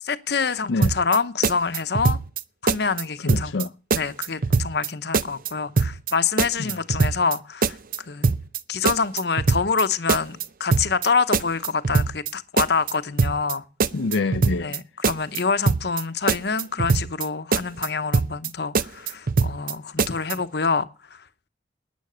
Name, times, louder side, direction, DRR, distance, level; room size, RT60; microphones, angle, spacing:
voice 1, 0.0-2.2 2.6-3.5 3.9-8.3 8.7-13.6 14.6-20.9 21.1-21.2, left 5 dB, 60° left, 0.9 m, -26 dB
sound 1, 0.8-1.2 1.4-2.4 2.7-3.0 3.3-3.6 3.9-4.9 5.1-5.5 5.8-6.1 6.4-7.4 7.6-8.0 8.2-8.6 8.9-9.8 10.1-10.4 10.7-11.1 11.3-12.3 12.6-12.9 13.2-13.5 13.8-14.8 15.0-15.4 15.7-16.0 16.3-17.3 17.5-17.9 18.1-18.5 18.7-19.7 20.0-20.3, right 4 dB, 50° right, 0.6 m, -22 dB
voice 2, 3.2-3.7 6.6-6.7 13.9-14.7, left 3 dB, 85° left, 0.5 m, -26 dB
11.5 x 9.5 x 6.8 m
head